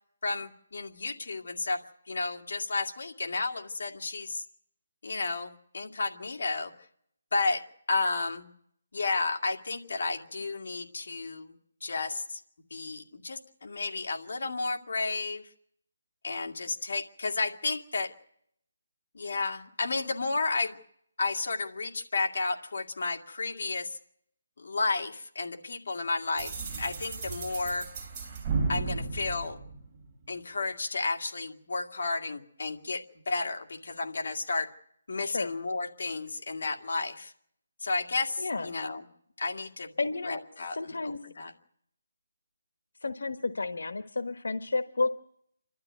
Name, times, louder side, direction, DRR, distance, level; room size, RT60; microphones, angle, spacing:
voice 1, 0.2-1.8 2.1-4.4 5.0-6.7 7.3-7.6 7.9-8.5 8.9-11.6 11.8-12.4 12.7-15.4 16.2-18.1 19.1-20.8 21.2-24.0 24.6-27.9 28.7-29.6 30.3-34.7 35.1-37.3 37.8-39.0 39.4-39.9 40.2-41.5, left 3 dB, 55° left, 2 dB, 2.2 m, -32 dB
sound 1, 26.4-30.2, right 4 dB, 15° right, 3.5 m, -34 dB
voice 2, 35.2-35.5 38.4-38.7 40.0-40.4 40.7-41.2 43.0-45.1, left 3 dB, 85° left, 9 dB, 1.1 m, -31 dB
27.5 x 12.5 x 9.4 m, 0.72 s
hypercardioid pair, 175°, 0 cm